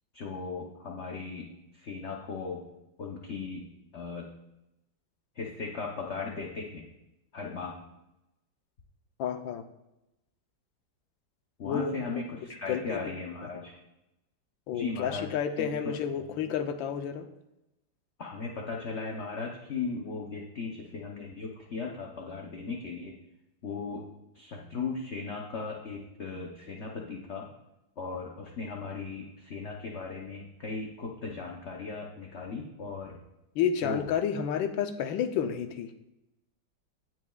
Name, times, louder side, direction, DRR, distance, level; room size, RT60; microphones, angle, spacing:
voice 1, 0.1-2.6 3.0-3.7 3.9-4.3 5.4-6.8 7.3-7.9 11.6-13.8 14.7-16.5 18.2-23.1 23.6-24.0 24.3-27.5 28.0-33.2 33.8-34.0, left 4 dB, 50° left, -1 dB, 0.8 m, -37 dB
voice 2, 9.2-9.6 11.6-12.0 12.7-13.0 14.7-17.3 33.5-35.9, left 8 dB, 85° left, 8 dB, 1.5 m, -30 dB
17.5 x 6.1 x 2.4 m, 0.91 s
omnidirectional pair, 2.1 m